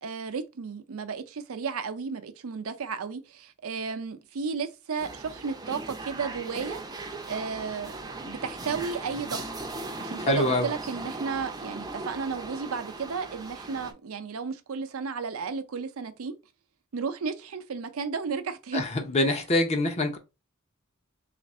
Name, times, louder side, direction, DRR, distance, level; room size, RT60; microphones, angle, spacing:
voice 1, 0.0-6.8 7.3-9.5 10.0-16.4 16.9-18.9, right 5 dB, 80° right, 0.5 m, -33 dB
sound 1, 5.0-13.9, right 2 dB, 20° right, 0.5 m, -38 dB
voice 2, 10.3-10.7 18.7-20.2, left 2 dB, 30° left, 0.6 m, -25 dB
3.4 x 2.5 x 4.1 m
head